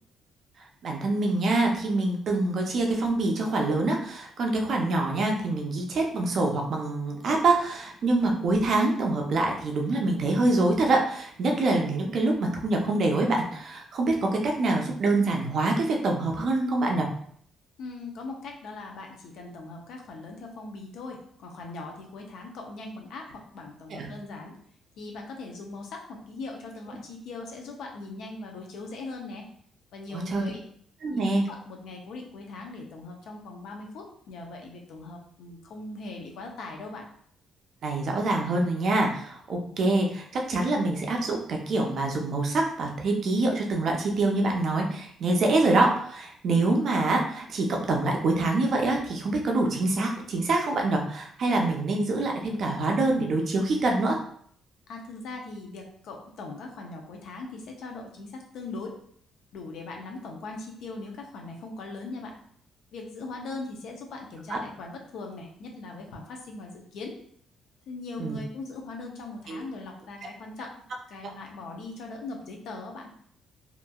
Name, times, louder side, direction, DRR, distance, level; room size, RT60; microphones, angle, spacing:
voice 1, 0.8-17.1 23.9-24.1 30.1-30.4 31.0-31.4 37.8-54.2 64.5-64.6 68.2-68.4 69.5-69.6, right 2 dB, 45° right, 1 dB, 0.4 m, -25 dB
voice 2, 17.8-24.5 25.0-29.4 29.9-30.6 31.1-37.1 54.9-59.0 59.5-62.4 62.9-67.1 67.9-70.8 71.1-73.1, left 3 dB, 65° left, 1 dB, 0.5 m, -40 dB
2.8 x 2.5 x 2.3 m, 0.63 s
cardioid pair, 175°, 0 cm